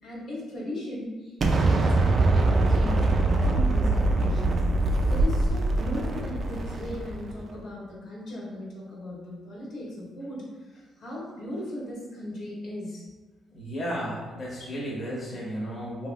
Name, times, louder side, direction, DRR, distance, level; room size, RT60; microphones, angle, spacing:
voice 1, 0.0-4.7 5.1-13.1, left 1 dB, 70° left, -5 dB, 1.1 m, -37 dB
Explosion, 1.4-7.4, right 2 dB, 45° right, 0.3 m, -23 dB
voice 2, 13.5-16.1, equal, 35° left, -5 dB, 0.8 m, -33 dB
2.9 x 2.6 x 2.5 m, 1.3 s
cardioid pair, 90°, 0 cm